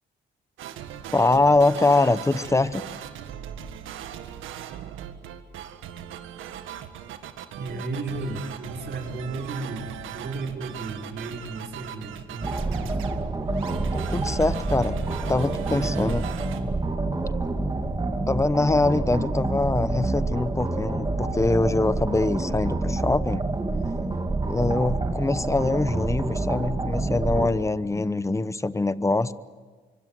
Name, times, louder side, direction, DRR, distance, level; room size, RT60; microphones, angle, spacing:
sound 1, 0.6-16.6, right 10 dB, 90° right, 1.8 m, -39 dB
voice 1, 1.1-2.8 13.9-15.0 15.3-16.3 18.3-23.5 24.5-29.3, left 2 dB, 15° left, 15 dB, 0.9 m, -23 dB
voice 2, 7.6-13.0, right 3 dB, 60° right, 1 dB, 6.0 m, -34 dB
sound 2, 12.4-27.5, right 2 dB, 20° right, 2.5 m, -27 dB
25.0 x 24.5 x 7.7 m, 1.4 s
cardioid pair, 90°, 20 cm